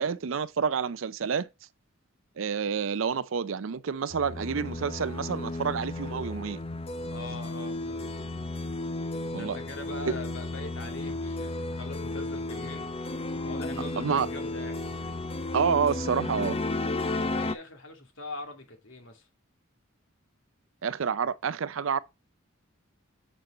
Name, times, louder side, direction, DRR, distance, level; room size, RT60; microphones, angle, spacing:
voice 1, 0.0-1.5 2.4-6.6 9.3-9.6 10.1-10.2 14.0-14.3 15.5-16.6 20.8-22.0, right 6 dB, 70° right, 0.5 m, -28 dB
sound 1, 4.1-17.5, left 2 dB, 30° left, 0.7 m, -33 dB
voice 2, 7.1-8.0 9.3-13.2 13.4-14.8 17.1-19.3, left 2 dB, 65° left, 2.4 m, -42 dB
7.5 x 5.2 x 4.2 m
head